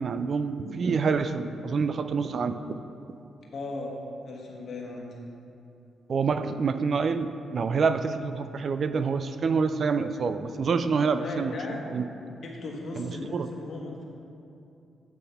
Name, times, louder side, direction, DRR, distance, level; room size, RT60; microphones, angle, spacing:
voice 1, 0.0-2.6 6.1-11.5 11.9-12.0 13.0-13.5, right 5 dB, 55° right, 10 dB, 0.3 m, -27 dB
voice 2, 3.5-3.9 4.2-5.1 10.8-11.8 12.4-14.1, left 3 dB, 60° left, -1 dB, 1.2 m, -37 dB
8.2 x 3.5 x 5.6 m, 2.6 s
supercardioid pair, 50°, 0 cm